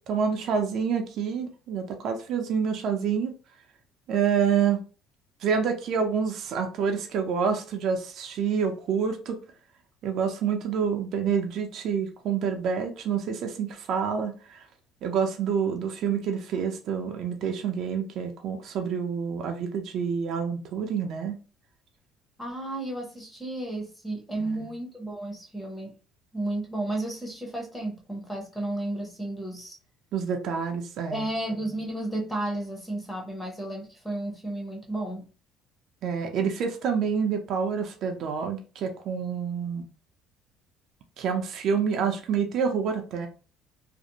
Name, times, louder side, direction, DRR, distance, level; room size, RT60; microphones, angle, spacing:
voice 1, 0.0-3.3 4.1-4.8 5.4-9.4 10.0-14.6 15.0-21.4 24.4-24.7 30.1-31.3 36.0-39.9 41.2-43.3, right 6 dB, 55° right, 0.4 m, -27 dB
voice 2, 22.4-25.9 26.3-29.8 31.1-35.3, right 1 dB, 5° left, 0.7 m, -33 dB
2.5 x 2.0 x 2.8 m
cardioid pair, 145°, 0 cm